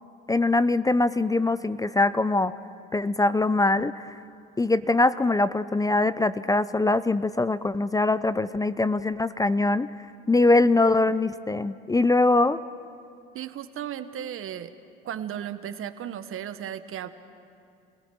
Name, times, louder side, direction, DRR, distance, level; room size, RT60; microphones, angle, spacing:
voice 1, 0.3-2.5 2.9-4.2 4.6-9.9 10.3-12.6, left 2 dB, 10° left, 15 dB, 0.5 m, -22 dB
voice 2, 13.3-14.7 15.0-17.1, right 10 dB, 50° right, 11 dB, 1.2 m, -35 dB
28.5 x 18.0 x 6.2 m, 2.4 s
hypercardioid pair, 75°, 29 cm